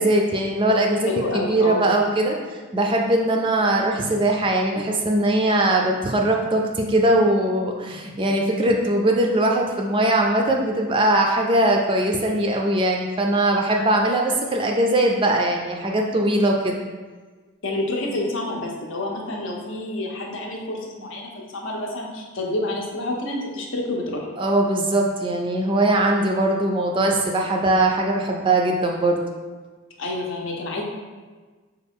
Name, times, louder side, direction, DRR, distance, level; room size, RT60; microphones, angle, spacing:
voice 1, 0.0-16.7 24.4-29.2, right 1 dB, 25° right, 1 dB, 0.3 m, -21 dB
voice 2, 1.1-1.9 17.6-24.3 30.0-30.8, left 2 dB, 70° left, -1 dB, 0.7 m, -28 dB
5.1 x 2.4 x 3.5 m, 1.4 s
head